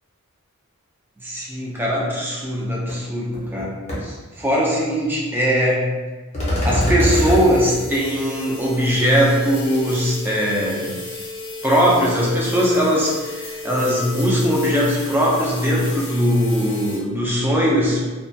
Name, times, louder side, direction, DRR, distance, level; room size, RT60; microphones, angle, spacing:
voice 1, 1.2-5.9 6.6-10.9 11.6-18.0, equal, 10° right, -5 dB, 0.4 m, -20 dB
sound 1, 2.9-3.0 3.3-3.6 3.9-4.0 6.3-7.4, left 1 dB, 30° left, 0.7 m, -21 dB
sound 2, 7.0-17.0, left 2 dB, 70° left, 0.7 m, -34 dB
2.2 x 2.2 x 2.6 m, 1.3 s
head